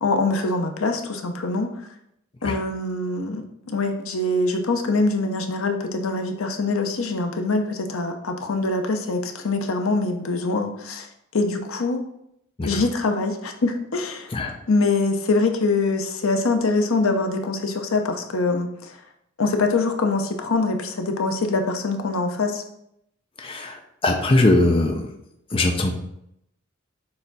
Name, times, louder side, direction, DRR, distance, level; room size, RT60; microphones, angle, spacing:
voice 1, 0.0-1.7 2.4-3.4 3.7-11.1 11.3-12.0 12.6-14.3 14.7-18.9 19.4-22.6, left 3 dB, 75° left, 5 dB, 0.7 m, -24 dB
voice 2, 23.4-23.8 24.0-25.1 25.5-25.9, left 2 dB, 25° left, 3 dB, 0.6 m, -20 dB
6.8 x 3.5 x 4.0 m, 0.77 s
head